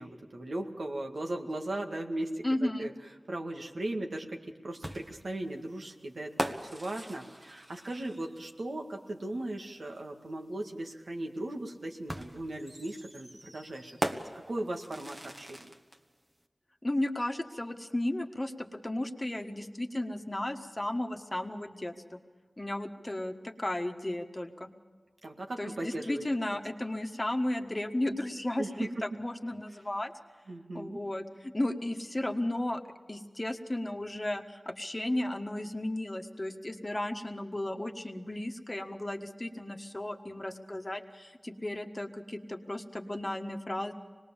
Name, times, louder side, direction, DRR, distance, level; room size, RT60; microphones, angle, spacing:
voice 1, 0.0-2.9 3.3-14.1 14.3-15.6 25.2-26.2 28.6-29.2 30.5-31.0, right 1 dB, 75° right, 2 dB, 2.0 m, -37 dB
voice 2, 2.4-2.9 16.8-22.2 22.6-24.7 25.6-30.1 30.7-32.8 33.1-43.9, left 1 dB, 25° left, 4 dB, 1.6 m, -34 dB
sound 1, 4.8-8.5 10.0-10.1 12.1-16.0, right 1 dB, 30° right, 1.6 m, -39 dB
25.0 x 20.0 x 7.3 m, 1.4 s
wide cardioid pair, 45°, 0 cm